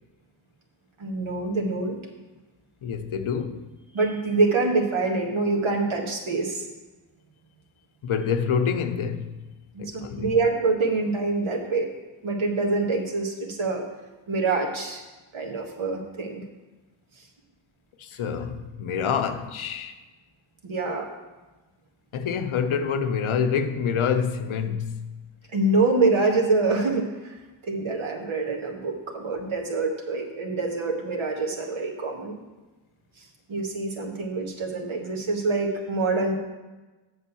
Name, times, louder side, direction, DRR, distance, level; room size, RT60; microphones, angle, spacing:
voice 1, 1.0-2.0 3.9-6.6 9.7-11.9 12.2-13.8 14.3-15.0 15.3-16.4 20.6-21.1 25.5-27.4 27.6-32.4 33.5-36.3, right 3 dB, 80° right, 1.7 m, -25 dB
voice 2, 2.8-3.7 8.0-9.3 9.8-10.4 18.0-19.9 22.1-25.2, left 6 dB, 90° left, 0.8 m, -27 dB
7.6 x 6.4 x 6.9 m
cardioid pair, 60°, 48 cm